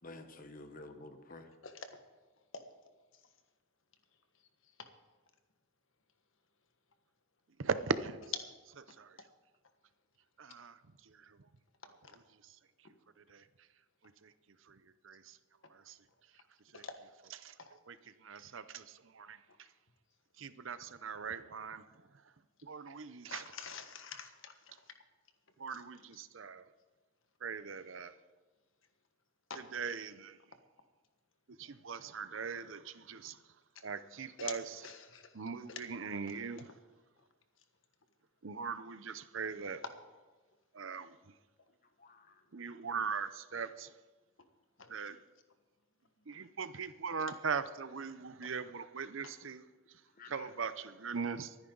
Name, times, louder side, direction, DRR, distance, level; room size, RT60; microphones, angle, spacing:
voice 1, 0.0-1.5 42.0-42.4 50.2-50.5, left 2 dB, 40° left, 7 dB, 1.2 m, -51 dB
voice 2, 7.6-8.2 9.0-9.2 10.4-10.8 11.0-11.4 13.3-13.4 14.2-14.3 14.7-14.8 15.0-15.4 15.7-16.0 16.7-16.8 17.4-17.5 17.9-18.0 18.2-19.4 20.4-21.9 22.6-23.4 25.6-26.6 27.4-28.1 29.7-30.4 31.6-33.4 33.8-34.6 35.3-36.7 38.4-39.8 40.7-41.2 42.5-43.9 44.9-45.2 46.3-49.6 50.3-51.5, right 5 dB, 65° right, 13 dB, 0.7 m, -40 dB
voice 3, 23.3-24.9 25.7-25.8 29.5-29.6 34.4-35.4 35.7-35.8 37.2-37.3 44.8-45.1, left 6 dB, 65° left, 7 dB, 1.5 m, -47 dB
24.0 x 9.8 x 4.0 m, 1.3 s
head